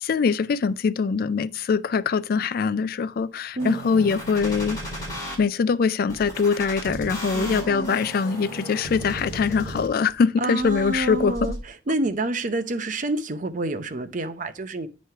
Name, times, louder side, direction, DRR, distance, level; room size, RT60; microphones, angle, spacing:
voice 1, 0.0-4.8 5.4-11.5, left 5 dB, 55° left, 0.3 m, -23 dB
sound 1, 3.6-5.4 6.1-10.1 10.6-11.6, equal, 20° left, 2.2 m, -35 dB
voice 2, 10.4-11.6 11.9-14.9, right 2 dB, 45° right, 0.7 m, -27 dB
9.2 x 3.1 x 5.6 m
head